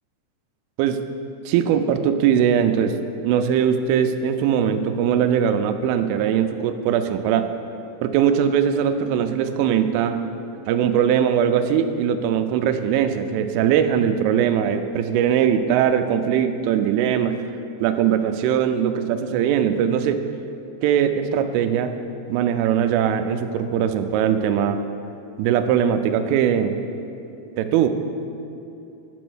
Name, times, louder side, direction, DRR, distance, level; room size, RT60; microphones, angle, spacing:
voice 1, 1.5-3.0 3.2-7.5 8.0-10.2 10.7-17.4 17.8-20.2 20.8-22.0 22.3-24.8 25.4-26.8 27.6-27.9, right 8 dB, 85° right, 8 dB, 2.9 m, -20 dB
9.8 x 6.2 x 6.2 m, 2.8 s
omnidirectional pair, 5.9 m